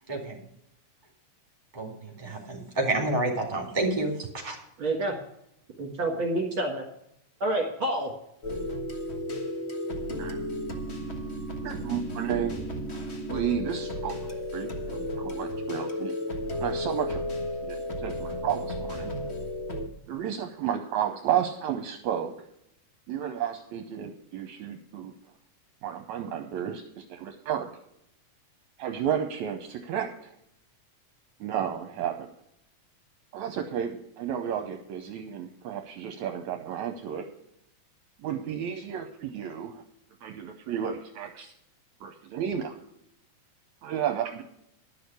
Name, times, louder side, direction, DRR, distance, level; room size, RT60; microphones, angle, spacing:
voice 1, 0.1-0.4 1.7-4.6, right 2 dB, 15° right, 1 dB, 3.1 m, -29 dB
voice 2, 4.8-5.1 5.8-6.8 7.4-8.1, right 1 dB, 45° right, 0 dB, 2.4 m, -28 dB
sound 1, 8.4-19.9, left 1 dB, 60° left, 0.6 m, -33 dB
voice 3, 11.6-12.7 13.3-14.2 14.5-16.1 16.6-17.2 17.7-19.1 20.1-22.3 23.1-25.1 25.8-27.7 28.8-30.4 31.4-32.3 33.3-37.3 38.2-39.8 40.2-41.5 42.0-42.8 43.8-44.4, right 9 dB, 75° right, 5 dB, 2.0 m, -32 dB
11.5 x 6.3 x 8.2 m, 0.76 s
omnidirectional pair, 3.7 m